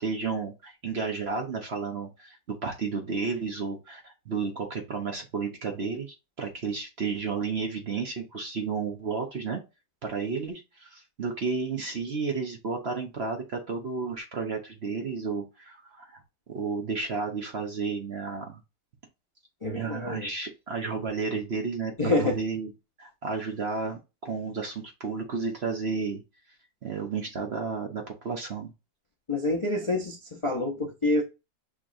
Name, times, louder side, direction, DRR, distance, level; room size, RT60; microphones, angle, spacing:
voice 1, 0.0-9.6 10.0-16.2 16.5-18.6 19.7-22.7 23.0-26.2 26.8-28.7, right 4 dB, 45° right, 0.9 m, -32 dB
voice 2, 19.6-20.3 22.0-22.4 29.3-31.2, left 2 dB, 55° left, 0.3 m, -27 dB
6.1 x 3.0 x 2.5 m
omnidirectional pair, 2.0 m